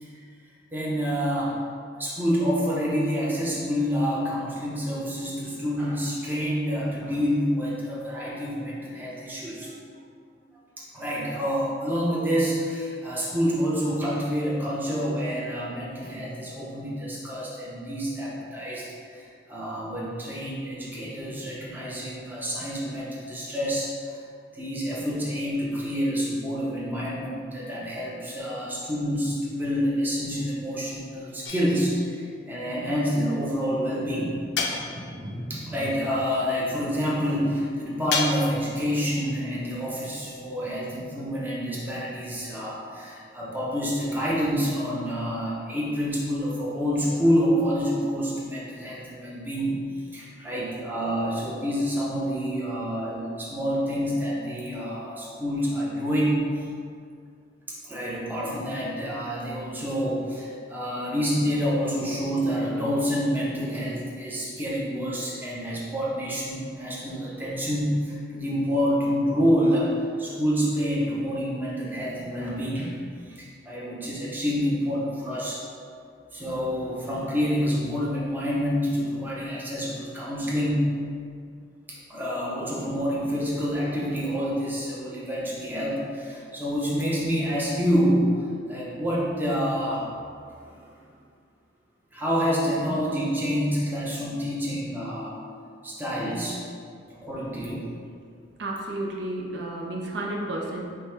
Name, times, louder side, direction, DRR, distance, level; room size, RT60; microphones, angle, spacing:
voice 1, 0.7-1.6 2.0-9.9 10.8-24.2 24.5-34.4 35.5-49.8 50.1-56.7 57.7-72.9 73.3-75.6 76.3-80.9 81.9-88.3 88.7-90.1 90.6-90.9 92.1-95.4 95.8-96.6 97.1-97.9, equal, 10° right, -6 dB, 0.7 m, -27 dB
sound 1, 31.4-32.1 34.6-35.4 38.1-38.8, left 4 dB, 65° left, 0.4 m, -30 dB
Thunder / Rain, 33.3-42.5 42.8-43.7 44.2-44.6 44.8-45.7 46.3-46.4, equal, 50° right, 0.9 m, -45 dB
voice 2, 98.6-100.9, right 1 dB, 65° right, -1 dB, 0.5 m, -31 dB
5.1 x 2.2 x 4.5 m, 2.2 s
head